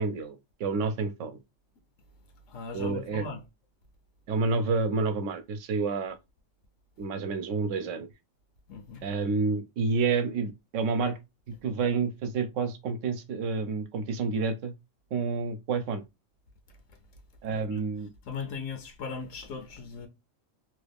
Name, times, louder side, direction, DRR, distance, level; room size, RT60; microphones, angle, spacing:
voice 1, 0.0-1.4 2.7-3.3 4.3-6.1 7.0-8.1 9.0-11.2 11.5-14.7 15.1-16.0 17.4-18.1, right 4 dB, 75° right, 0.9 m, -29 dB
voice 2, 2.5-3.4 8.7-9.1 17.5-17.8 18.2-20.1, left 5 dB, 80° left, 1.0 m, -38 dB
2.9 x 2.3 x 3.4 m
omnidirectional pair, 1.3 m